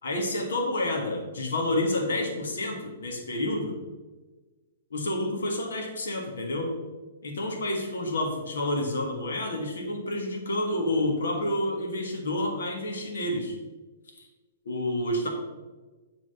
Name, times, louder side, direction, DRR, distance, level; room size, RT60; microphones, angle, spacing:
voice 1, 0.0-3.7 4.9-6.7 7.2-13.6 14.2-14.3 14.6-15.3, left 1 dB, 85° left, 1 dB, 1.6 m, -29 dB
7.7 x 3.9 x 6.7 m, 1.2 s
hypercardioid pair, 145°, 0 cm